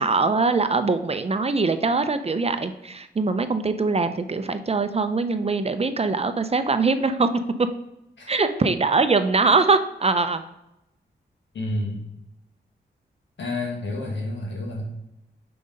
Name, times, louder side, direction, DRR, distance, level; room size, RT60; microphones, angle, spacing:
voice 1, 0.0-7.3 7.6-7.7 8.3-10.4, right 4 dB, 35° right, 10 dB, 0.5 m, -22 dB
voice 2, 8.2-8.5 11.5-12.0 13.4-14.9, left 2 dB, 75° left, -2 dB, 1.7 m, -29 dB
5.4 x 3.9 x 5.2 m, 0.86 s
cardioid pair, 50°, 19 cm